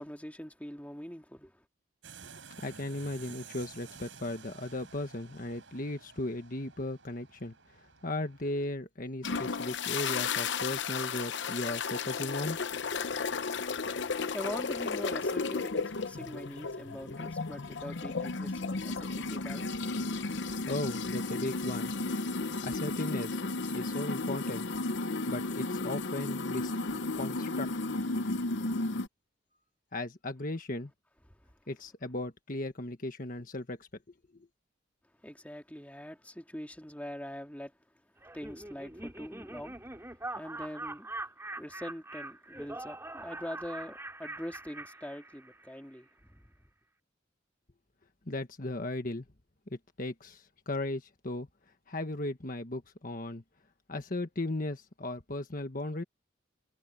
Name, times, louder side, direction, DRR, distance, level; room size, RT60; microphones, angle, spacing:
voice 1, 0.0-1.6 13.6-19.9 31.4-31.5 35.2-37.7 38.3-39.8 40.3-41.1 41.6-46.4, equal, 5° left, 2.4 m, -43 dB
sound 1, 2.0-8.7, right 6 dB, 75° right, 4.2 m, -52 dB
voice 2, 2.6-12.9 20.7-21.9 22.6-23.4 23.7-24.7 25.2-26.7 27.2-27.7 29.9-30.9 31.7-33.9 48.3-49.2 49.7-51.5 51.9-53.4 53.9-56.0, left 2 dB, 45° left, 1.5 m, -36 dB
sound 2, 9.2-29.1, left 3 dB, 60° left, 0.8 m, -34 dB
Laughter, 38.2-45.7, right 2 dB, 15° right, 6.2 m, -43 dB
head